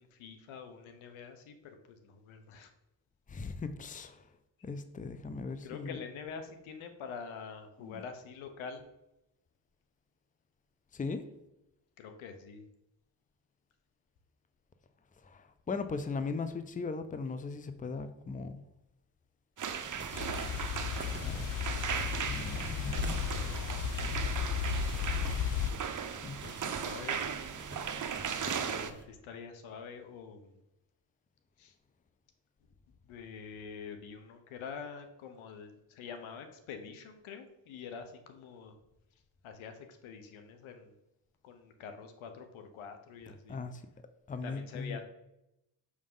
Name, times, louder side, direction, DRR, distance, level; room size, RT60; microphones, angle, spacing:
voice 1, 0.0-2.7 5.6-8.8 12.0-12.6 26.4-27.3 28.4-30.5 31.6-31.7 33.1-38.7 39.4-40.9 41.4-43.6 44.4-45.0, left 6 dB, 85° left, 7 dB, 1.0 m, -46 dB
voice 2, 3.3-4.2 4.6-5.9 7.8-8.0 10.9-11.2 15.2-18.6 21.2-21.5 22.3-23.2 26.2-26.7 43.5-43.8 44.3-45.0, left 4 dB, 15° left, 10 dB, 0.6 m, -38 dB
sound 1, 19.6-29.1, right 3 dB, 25° right, 1.0 m, -48 dB
sound 2, 19.6-28.9, right 7 dB, 40° right, 0.7 m, -37 dB
sound 3, 20.1-25.7, left 7 dB, 70° left, 0.7 m, -34 dB
6.4 x 3.6 x 5.5 m, 0.87 s
supercardioid pair, 60°, 47 cm